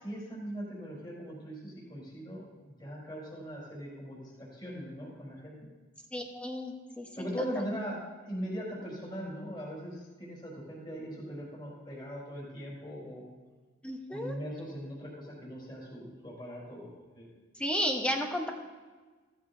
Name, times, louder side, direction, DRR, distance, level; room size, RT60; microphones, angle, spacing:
voice 1, 0.0-5.5 7.1-13.2 14.1-17.3, equal, 20° left, -5 dB, 4.2 m, -40 dB
voice 2, 6.1-7.3 7.6-7.7 13.8-14.4 17.6-18.5, equal, 5° left, 1 dB, 1.2 m, -33 dB
15.5 x 13.5 x 2.8 m, 1.3 s
head